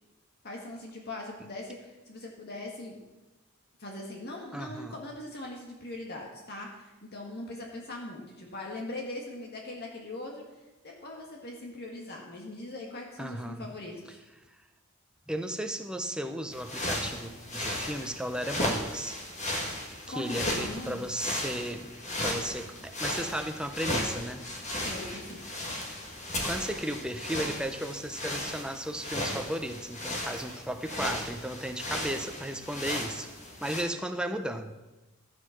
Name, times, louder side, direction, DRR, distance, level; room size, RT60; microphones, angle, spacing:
voice 1, 0.4-3.0 3.8-10.4 10.8-14.2 20.1-21.1 24.8-25.4, left 2 dB, 50° left, 0 dB, 1.8 m, -41 dB
voice 2, 4.5-4.9 13.2-13.6 15.3-19.2 20.1-21.9 22.2-24.8 26.4-33.3 33.6-34.7, right 1 dB, 5° right, 6 dB, 0.7 m, -35 dB
sound 1, 16.5-33.8, left 1 dB, 35° left, 1.8 m, -35 dB
14.0 x 7.9 x 5.9 m, 1.1 s
head